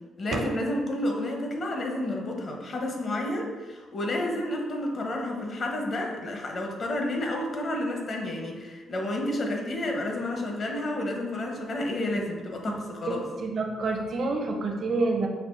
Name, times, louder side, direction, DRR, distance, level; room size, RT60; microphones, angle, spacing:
voice 1, 0.2-13.2, left 1 dB, 45° left, 1 dB, 0.7 m, -30 dB
voice 2, 13.4-15.3, right 3 dB, 55° right, 2 dB, 0.5 m, -27 dB
5.4 x 2.2 x 2.5 m, 1.3 s
cardioid pair, 90°, 0 cm